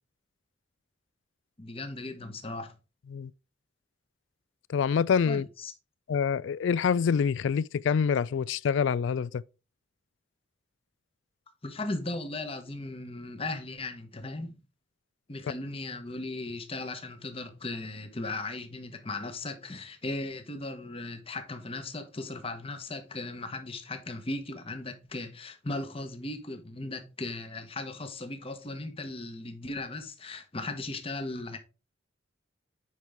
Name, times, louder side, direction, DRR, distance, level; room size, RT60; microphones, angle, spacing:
voice 1, 1.6-2.7 5.2-5.7 11.6-14.6 15.3-31.6, left 2 dB, 30° left, 1.2 m, -37 dB
voice 2, 4.7-5.5 6.1-9.4, left 6 dB, 70° left, 0.3 m, -26 dB
9.4 x 4.6 x 3.5 m
head